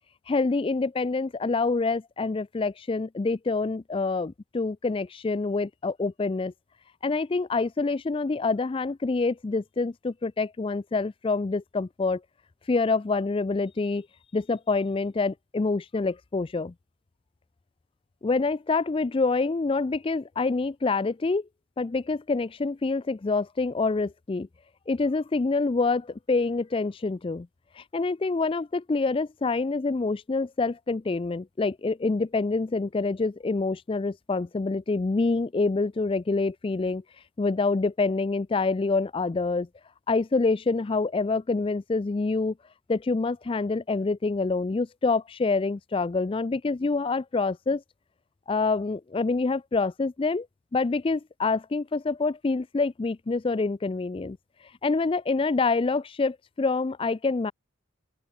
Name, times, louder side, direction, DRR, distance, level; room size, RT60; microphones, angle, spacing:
voice 1, 0.3-6.5 7.0-12.2 12.7-14.1 14.3-16.7 18.2-21.5 21.8-24.5 24.9-27.5 27.8-37.0 37.4-39.7 40.1-42.5 42.9-47.8 48.5-50.5 50.7-54.4 54.8-57.5, left 3 dB, 25° left, 0.3 m, -26 dB
open air
head